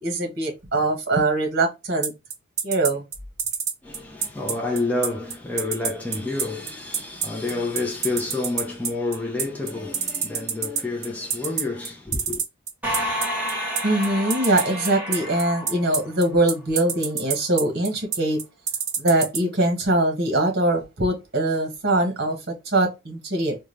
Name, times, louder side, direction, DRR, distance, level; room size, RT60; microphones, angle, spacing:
voice 1, 0.0-2.1 2.6-3.0 13.8-18.4 19.0-23.6, right 2 dB, 50° right, 1.2 m, -22 dB
sound 1, 2.0-19.4, right 7 dB, 35° right, 0.7 m, -26 dB
voice 2, 3.8-12.4, left 2 dB, 10° left, 0.6 m, -29 dB
sound 2, 12.8-16.5, equal, 10° right, 1.1 m, -30 dB
3.6 x 2.3 x 3.2 m
head